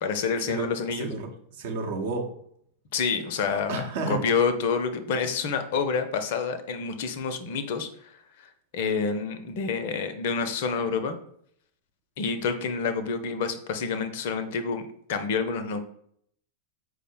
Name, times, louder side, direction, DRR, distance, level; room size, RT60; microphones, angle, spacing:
voice 1, 0.0-1.1 2.9-8.2 8.7-11.2 12.2-15.8, left 5 dB, 50° left, 9 dB, 0.5 m, -28 dB
voice 2, 1.0-2.3 3.7-4.2, right 3 dB, 55° right, 2 dB, 0.7 m, -31 dB
4.7 x 2.0 x 4.5 m, 0.67 s
figure-of-eight pair, 90°, 0 cm